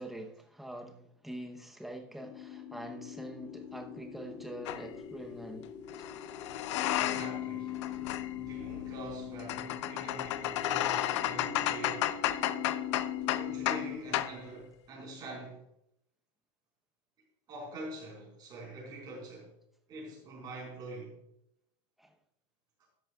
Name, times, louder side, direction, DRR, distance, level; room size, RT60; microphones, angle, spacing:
voice 1, 0.0-5.7 6.0-6.1 22.0-22.1, right 1 dB, ahead, 3 dB, 0.9 m, -44 dB
sound 1, 2.2-14.0, left 9 dB, 45° left, 2.6 m, -41 dB
sound 2, 4.7-4.8 5.9-7.5 7.7-13.9 14.1-14.4, left 13 dB, 75° left, 0.6 m, -33 dB
voice 2, 6.9-7.8 8.4-12.1 13.3-15.6 17.5-19.5 19.9-21.2, right 2 dB, 25° right, -2 dB, 4.5 m, -44 dB
13.0 x 10.5 x 2.4 m, 0.74 s
supercardioid pair, 170°, 15 cm